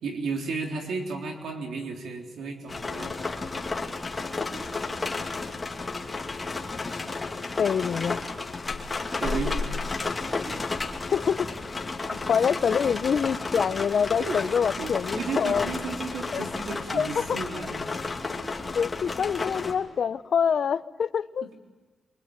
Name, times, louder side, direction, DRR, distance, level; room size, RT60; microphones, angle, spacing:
voice 1, 0.0-3.2 9.2-9.6 12.1-12.8 14.2-14.4 14.8-17.9 21.4-21.6, right 4 dB, 80° right, 2 dB, 3.6 m, -34 dB
sound 1, 2.7-19.7, left 3 dB, 30° left, 2.7 m, -32 dB
voice 2, 7.6-8.2 11.1-11.5 12.3-15.7 16.3-16.4 16.9-17.4 18.7-21.5, left 7 dB, 65° left, 15 dB, 0.7 m, -25 dB
25.0 x 23.0 x 8.7 m, 1.3 s
cardioid pair, 85°, 0 cm